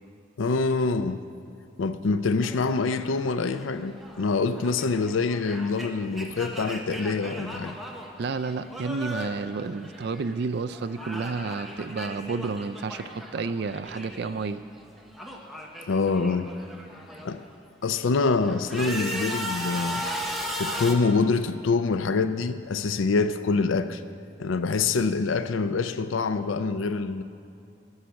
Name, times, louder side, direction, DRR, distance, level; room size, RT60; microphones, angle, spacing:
voice 1, 0.4-1.2 1.8-7.8 15.9-16.5 17.2-17.4 17.8-20.1 20.6-24.0 24.4-27.2, left 4 dB, 90° left, 11 dB, 0.5 m, -25 dB
sound 1, 2.4-10.4 10.7-14.5 14.7-17.4 17.9-20.9, equal, ahead, 0.9 m, -37 dB
voice 2, 8.2-14.6, right 4 dB, 55° right, 10 dB, 0.4 m, -31 dB
13.0 x 6.3 x 8.2 m, 2.7 s
head